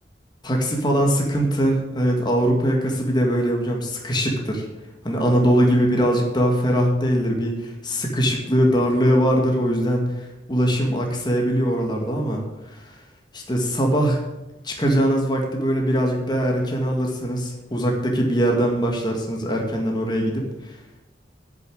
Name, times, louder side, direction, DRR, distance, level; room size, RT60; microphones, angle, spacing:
voice 1, 0.4-4.7 5.0-12.4 12.7-13.0 13.3-14.2 14.6-20.8, equal, 25° left, 1 dB, 2.0 m, -21 dB
10.0 x 7.3 x 8.5 m, 1.0 s
head